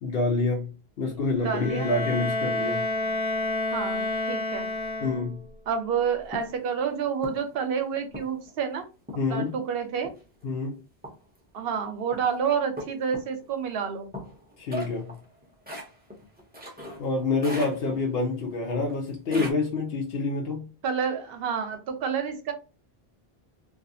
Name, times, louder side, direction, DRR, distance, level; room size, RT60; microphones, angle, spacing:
voice 1, 0.0-0.7 1.0-2.8 5.0-5.4 9.1-9.6 10.4-10.8 14.6-15.2 17.0-20.7, left 3 dB, 80° left, 0.8 m, -27 dB
voice 2, 1.0-1.9 3.7-4.7 5.7-8.9 9.3-10.1 11.5-14.1 20.8-22.5, right 6 dB, 70° right, 0.8 m, -29 dB
Bowed string instrument, 1.4-5.5, left 2 dB, 35° left, 0.5 m, -29 dB
sound 1, 6.3-6.6 7.2-7.6 8.1-8.5 9.1-9.4 10.0-10.4 11.0-11.4 12.1-12.3 12.8-13.4 14.1-17.1 17.4-18.2 18.8-19.5, left 1 dB, 10° right, 0.5 m, -38 dB
2.4 x 2.3 x 2.6 m
omnidirectional pair, 1.0 m